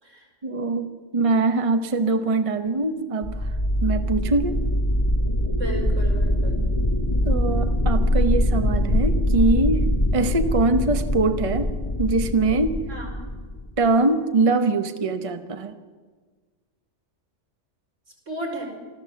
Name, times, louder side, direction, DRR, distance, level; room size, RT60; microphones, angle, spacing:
voice 1, 0.4-3.5 3.8-4.6 7.2-9.9 10.1-11.7 12.0-12.8 13.8-15.7, right 3 dB, 30° right, 7 dB, 1.0 m, -23 dB
sound 1, 3.2-13.8, left 1 dB, 25° left, 1.0 m, -23 dB
voice 2, 5.5-6.6 12.9-13.1 18.3-18.6, right 2 dB, 80° right, 0 dB, 5.4 m, -33 dB
25.5 x 14.0 x 7.6 m, 1.4 s
omnidirectional pair, 1.3 m